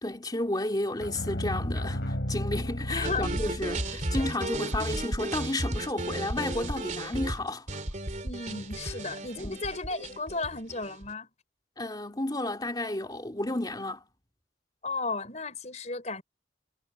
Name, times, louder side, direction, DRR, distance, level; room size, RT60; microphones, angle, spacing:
voice 1, 0.0-7.7 9.4-9.6 11.8-14.0, left 1 dB, 25° left, 3.0 m, -32 dB
sound 1, 1.0-4.1, equal, 75° left, 4.0 m, -33 dB
voice 2, 2.9-3.3 3.9-4.0 8.2-11.3 14.8-16.2, left 3 dB, 40° left, 5.2 m, -34 dB
sound 2, 3.0-11.1, right 1 dB, 45° right, 3.1 m, -34 dB
head